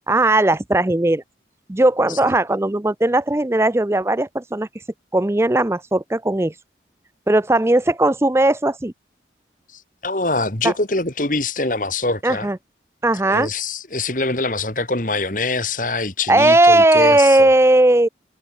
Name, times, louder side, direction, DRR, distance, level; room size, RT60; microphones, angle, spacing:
voice 1, 0.1-1.2 1.7-4.7 5.1-6.5 7.3-8.9 10.6-10.7 12.2-12.6 13.0-13.5 16.3-18.1, right 2 dB, 15° right, 0.5 m, -17 dB
voice 2, 9.7-12.5 13.3-17.5, left 2 dB, 45° left, 3.1 m, -24 dB
head